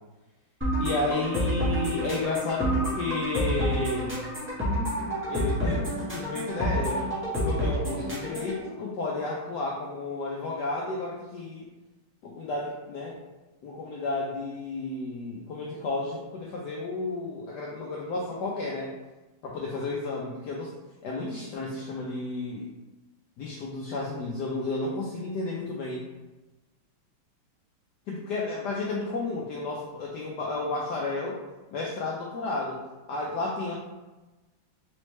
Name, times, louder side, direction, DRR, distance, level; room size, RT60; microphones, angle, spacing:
sound 1, 0.6-8.6, equal, 10° right, 0.7 m, -28 dB
voice 1, 0.8-4.2 5.3-7.1 7.4-11.7 12.2-13.2 13.6-18.9 19.4-20.7 21.0-22.7 23.4-26.1 28.1-31.4 31.7-32.8 33.1-33.7, left 3 dB, 75° left, -3 dB, 0.9 m, -32 dB
4.2 x 3.1 x 3.1 m, 1.1 s
omnidirectional pair, 2.3 m